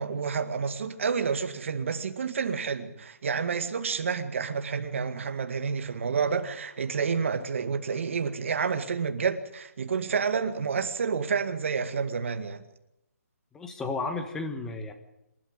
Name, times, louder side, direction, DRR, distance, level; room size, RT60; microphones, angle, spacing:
voice 1, 0.0-12.6, right 5 dB, 50° right, 2.1 m, -29 dB
voice 2, 13.5-14.9, left 3 dB, 5° left, 1.3 m, -33 dB
26.5 x 12.5 x 9.0 m
hypercardioid pair, 170°, 9 cm